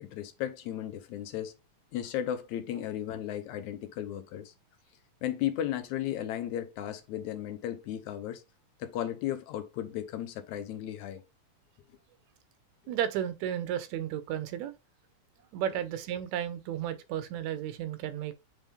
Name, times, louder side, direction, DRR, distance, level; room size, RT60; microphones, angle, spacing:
voice 1, 0.0-1.5 1.9-4.5 5.2-8.4 8.8-11.2, left 11 dB, 85° left, 2.2 m, -35 dB
voice 2, 12.9-14.7 15.5-18.3, right 10 dB, 80° right, 2.0 m, -33 dB
7.3 x 3.7 x 3.4 m
omnidirectional pair, 3.3 m